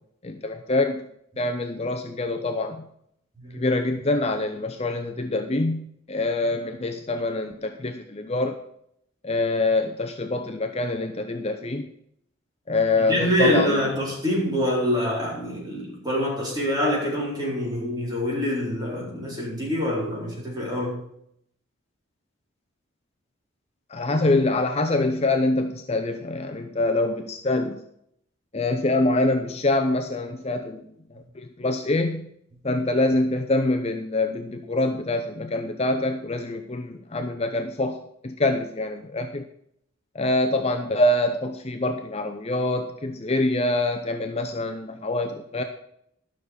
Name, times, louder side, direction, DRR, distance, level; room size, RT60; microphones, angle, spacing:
voice 1, 0.2-1.1 1.4-2.9 3.5-8.5 9.2-11.9 12.7-13.8 23.9-27.8 28.5-30.8 31.1-32.3 32.6-38.0 38.2-39.4 40.1-45.6, left 2 dB, 30° left, 6 dB, 0.7 m, -25 dB
voice 2, 13.0-21.0, equal, 20° right, -4 dB, 4.1 m, -25 dB
12.0 x 6.5 x 5.2 m, 0.70 s
head